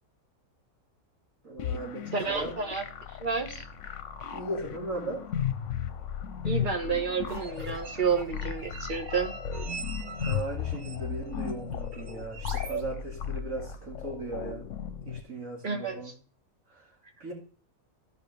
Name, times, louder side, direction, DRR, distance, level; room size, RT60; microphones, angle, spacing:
voice 1, 1.4-2.5 4.3-5.3 10.2-14.7 15.0-16.1 16.7-17.3, right 2 dB, 70° right, 2.9 m, -38 dB
sound 1, 1.6-15.2, left 8 dB, 65° left, 1.0 m, -35 dB
voice 2, 2.1-2.8 3.2-3.6 6.4-9.3 15.6-16.0, right 5 dB, 35° right, 1.4 m, -30 dB
sound 2, 7.3-12.8, right 4 dB, 85° right, 1.6 m, -42 dB
14.5 x 5.5 x 3.3 m
omnidirectional pair, 1.5 m